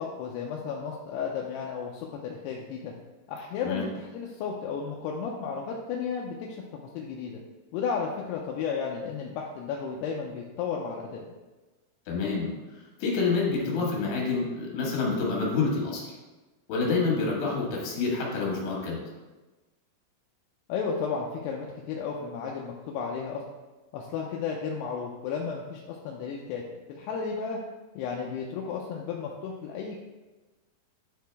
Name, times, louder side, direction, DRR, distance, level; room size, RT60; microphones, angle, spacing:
voice 1, 0.0-2.9 3.3-7.4 7.7-11.2 20.7-23.4 23.9-26.6 26.9-27.6 28.0-30.0, left 6 dB, 80° left, -1 dB, 2.6 m, -33 dB
voice 2, 12.1-12.5 13.0-16.1 16.7-19.0, left 4 dB, 60° left, -3 dB, 3.2 m, -27 dB
10.0 x 4.8 x 3.4 m, 1.2 s
omnidirectional pair, 5.1 m